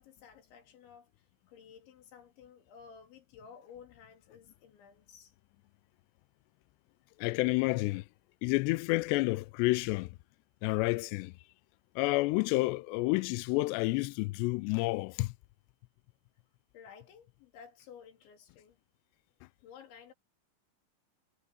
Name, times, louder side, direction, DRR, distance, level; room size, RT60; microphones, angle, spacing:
voice 1, 0.0-5.3 16.7-18.8 19.6-20.1, left 7 dB, 70° left, 5.5 m, -54 dB
voice 2, 7.2-8.0 8.4-10.1 10.6-11.3 12.0-15.3, left 23 dB, 90° left, 2.4 m, -29 dB
omnidirectional pair, 5.5 m